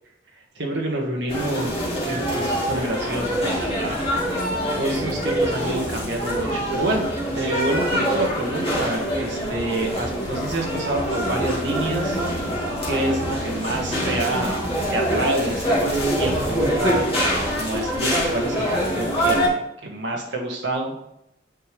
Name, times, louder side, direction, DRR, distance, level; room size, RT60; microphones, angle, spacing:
voice 1, 0.5-4.0 4.8-12.2 12.8-21.0, right 1 dB, 65° right, -1 dB, 1.6 m, -28 dB
sound 1, 1.3-19.5, equal, 30° left, 2.3 m, -25 dB
sound 2, 10.3-16.2, left 3 dB, 80° left, 0.6 m, -39 dB
sound 3, 12.9-18.1, equal, 45° left, 2.7 m, -40 dB
8.6 x 5.2 x 3.3 m, 0.82 s
head